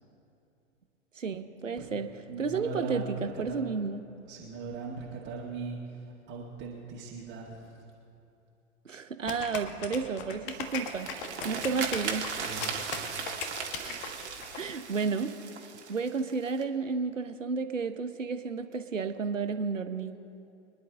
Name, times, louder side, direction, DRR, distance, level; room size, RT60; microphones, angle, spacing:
voice 1, 1.2-2.1 2.4-4.0 8.8-11.1 11.4-12.3 13.8-14.2 14.6-15.3 15.9-20.2, right 5 dB, 80° right, 9 dB, 0.9 m, -32 dB
voice 2, 2.3-3.6 4.3-7.8 10.5-10.6 11.4-11.8 12.4-12.8, right 4 dB, 30° right, -4 dB, 1.9 m, -40 dB
sound 1, 9.3-14.6, left 6 dB, 45° left, 1.6 m, -38 dB
sound 2, 10.5-16.6, right 6 dB, 60° right, 1.8 m, -38 dB
25.0 x 10.5 x 3.7 m, 2.7 s
figure-of-eight pair, 100°, 37 cm